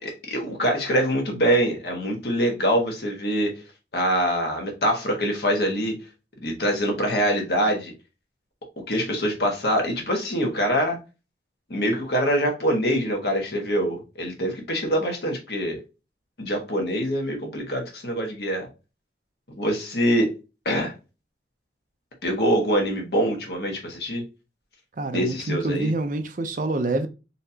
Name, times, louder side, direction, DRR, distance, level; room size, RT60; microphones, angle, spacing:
voice 1, 0.0-3.6 3.9-6.0 6.4-7.9 8.9-11.0 11.7-15.8 16.4-18.7 19.6-20.3 20.6-20.9 22.2-24.2 25.1-25.9, equal, 65° left, 1.3 m, -24 dB
voice 2, 25.0-27.1, right 2 dB, 50° right, 0.5 m, -26 dB
4.1 x 2.8 x 2.7 m
head